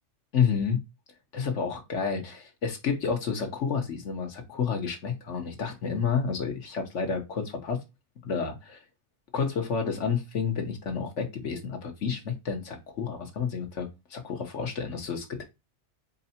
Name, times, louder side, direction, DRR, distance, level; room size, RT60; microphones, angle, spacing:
voice 1, 0.3-0.8 1.3-7.8 8.2-8.8 9.3-15.4, left 6 dB, 90° left, 1.5 m, -30 dB
4.6 x 2.7 x 4.2 m
omnidirectional pair, 1.2 m